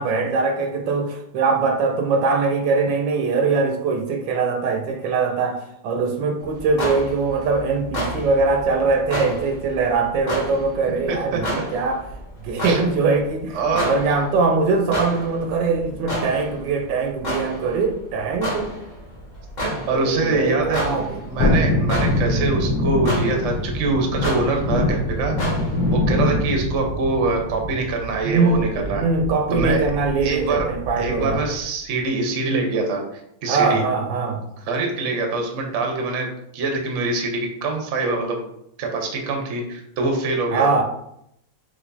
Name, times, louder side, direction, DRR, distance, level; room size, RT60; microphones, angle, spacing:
voice 1, 0.0-12.0 12.4-13.6 13.8-18.7 19.9-21.2 28.2-31.4 33.5-34.4 40.5-40.8, right 4 dB, 75° right, 4 dB, 1.2 m, -22 dB
sound 1, 6.4-25.9, equal, 30° left, 1.0 m, -32 dB
voice 2, 11.1-11.4 12.6-12.8 13.5-13.9 19.6-25.4 25.9-29.1 29.5-29.8 30.2-30.7 31.0-33.8 34.6-38.4 38.8-40.7, right 3 dB, 55° right, 2 dB, 0.9 m, -24 dB
Thunderstorm, 21.4-31.6 31.9-32.0, left 1 dB, 55° left, 1.3 m, -24 dB
4.9 x 3.3 x 2.6 m, 0.76 s
omnidirectional pair, 2.1 m